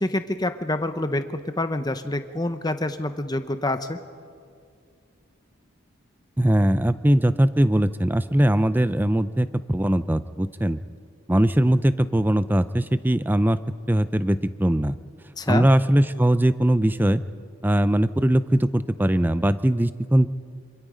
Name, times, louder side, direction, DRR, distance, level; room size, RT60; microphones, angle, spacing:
voice 1, 0.0-4.0 15.4-15.7, left 1 dB, 20° left, 9 dB, 0.9 m, -27 dB
voice 2, 6.4-10.8 11.3-13.6 13.9-14.9 15.5-17.2 17.6-20.3, right 1 dB, 10° right, 13 dB, 0.5 m, -20 dB
26.5 x 26.5 x 5.1 m, 2.2 s
head